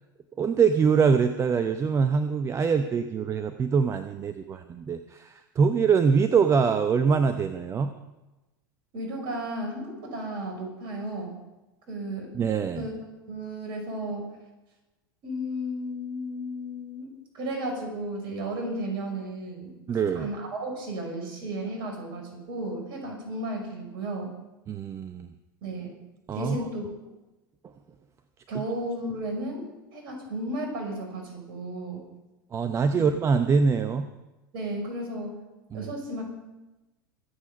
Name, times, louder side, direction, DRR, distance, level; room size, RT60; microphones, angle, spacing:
voice 1, 0.4-7.9 12.3-12.9 19.9-20.3 24.7-25.3 26.3-26.6 32.5-34.1 35.7-35.8, right 5 dB, 25° right, 10 dB, 0.8 m, -24 dB
voice 2, 8.9-11.3 11.9-12.3 12.7-12.9 13.3-14.3 15.2-19.8 20.1-24.3 25.6-25.9 26.3-26.9 28.5-32.0 32.9-33.1 34.5-35.4 35.7-36.2, right 1 dB, 45° right, 1 dB, 5.8 m, -34 dB
23.5 x 8.5 x 5.1 m, 1.0 s
figure-of-eight pair, 85°, 12 cm